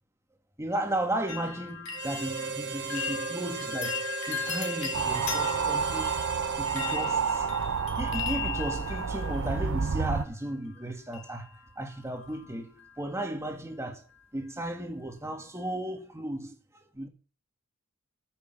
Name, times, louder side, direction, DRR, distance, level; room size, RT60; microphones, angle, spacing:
voice 1, 0.6-7.5 8.0-14.0 14.3-16.6 16.9-17.1, right 1 dB, 15° right, 2.3 m, -35 dB
sound 1, 1.3-10.2 11.1-11.7 11.9-12.5 12.8-12.9, left 7 dB, 65° left, 3.9 m, -38 dB
Harmonica, 1.9-7.9, right 6 dB, 55° right, 1.6 m, -37 dB
sound 2, 4.9-10.3, right 6 dB, 85° right, 0.6 m, -30 dB
14.5 x 7.2 x 7.4 m
head